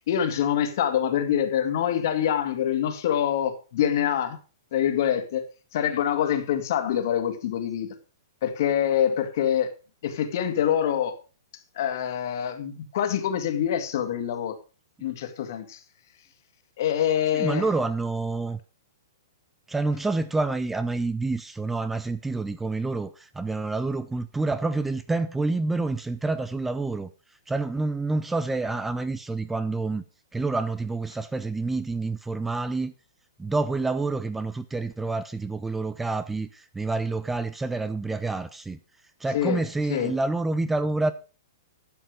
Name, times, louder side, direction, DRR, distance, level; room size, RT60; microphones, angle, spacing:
voice 1, 0.1-4.4 4.7-5.5 5.7-7.9 8.4-9.7 10.0-11.1 11.8-14.6 15.0-15.8 16.8-17.7 39.3-39.6 39.9-40.2, left 9 dB, 60° left, 2.1 m, -25 dB
voice 2, 17.3-18.6 19.7-27.1 27.5-30.0 30.3-32.9 33.4-38.8 39.2-41.1, right 3 dB, 10° right, 0.7 m, -28 dB
12.0 x 7.7 x 5.0 m
hypercardioid pair, 120°, 2 cm